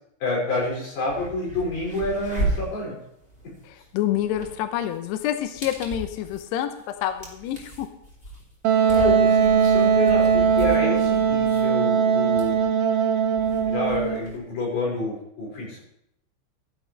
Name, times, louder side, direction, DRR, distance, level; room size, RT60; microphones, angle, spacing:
voice 1, 0.2-3.0 8.9-12.6 13.7-15.8, left 2 dB, 55° left, -5 dB, 7.1 m, -28 dB
sound 1, 0.6-0.7 1.0-14.4, right 2 dB, 15° left, 2.0 m, -36 dB
voice 2, 3.6-7.9, left 11 dB, 80° left, 8 dB, 2.5 m, -28 dB
Wind instrument woodwind instrument, 8.6-14.2, right 6 dB, 75° right, 2.0 m, -20 dB
15.5 x 11.5 x 3.2 m, 0.75 s
omnidirectional pair, 5.6 m